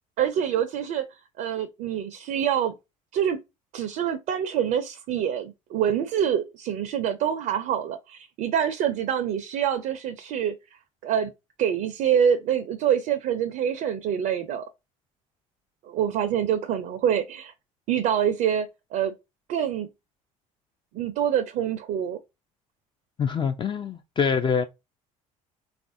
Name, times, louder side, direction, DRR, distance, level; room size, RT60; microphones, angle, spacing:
voice 1, 0.2-2.7 3.1-3.4 3.7-10.5 11.0-11.3 11.6-14.6 15.8-17.5 17.9-19.1 19.5-19.9 20.9-22.2, right 9 dB, 55° right, 0.4 m, -26 dB
voice 2, 23.2-24.6, left 6 dB, 30° left, 0.3 m, -25 dB
3.2 x 2.4 x 2.5 m
hypercardioid pair, 60°, 18 cm